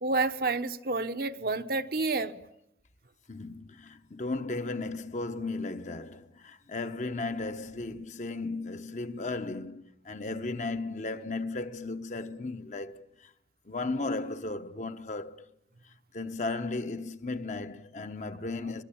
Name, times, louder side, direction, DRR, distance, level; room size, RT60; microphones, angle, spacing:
voice 1, 0.0-2.4, right 3 dB, 55° right, 1.0 m, -29 dB
voice 2, 3.3-13.0 13.7-15.5 16.1-18.8, left 3 dB, 40° left, 1.0 m, -35 dB
24.0 x 22.0 x 8.6 m
head